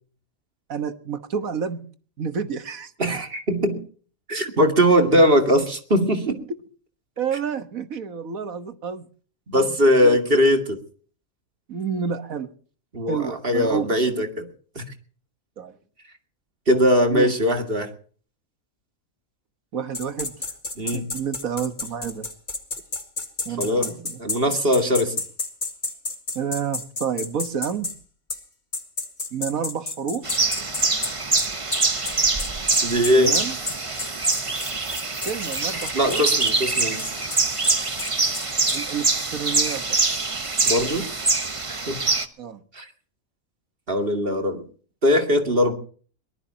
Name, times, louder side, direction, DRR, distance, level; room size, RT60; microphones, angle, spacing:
voice 1, 0.7-1.8 2.2-2.9 7.2-9.0 9.5-10.2 11.7-12.5 13.1-13.9 15.6-15.7 17.1-17.3 19.7-20.5 20.9-22.3 23.5-24.2 26.4-27.9 29.3-30.3 33.1-33.6 35.2-36.3 38.7-40.0 42.4-42.6, right 7 dB, 75° right, 10 dB, 1.8 m, -29 dB
voice 2, 3.0-3.8 4.3-6.4 9.5-10.8 12.9-14.5 14.8-14.9 16.7-17.9 20.8-21.1 23.6-25.1 32.8-33.4 35.9-37.0 40.6-41.1 41.7-42.0 42.7-42.9 43.9-44.6 45.0-45.7, equal, 40° right, 6 dB, 2.5 m, -20 dB
sound 1, 19.9-28.0 28.3-28.4 28.7-38.8, left 3 dB, 35° left, 2.0 m, -31 dB
sound 2, 30.2-42.3, right 3 dB, 25° right, 1.1 m, -24 dB
22.5 x 19.0 x 2.9 m, 0.43 s
omnidirectional pair, 1.5 m